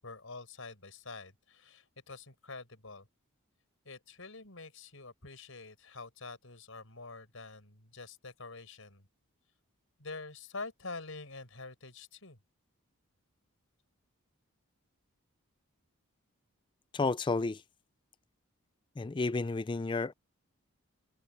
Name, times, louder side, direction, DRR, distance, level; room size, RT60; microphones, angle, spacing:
voice 1, 0.0-3.1 3.9-9.1 10.0-12.4, left 3 dB, 70° left, 5.2 m, -46 dB
voice 2, 16.9-17.6 19.0-20.1, left 3 dB, 20° left, 0.3 m, -31 dB
head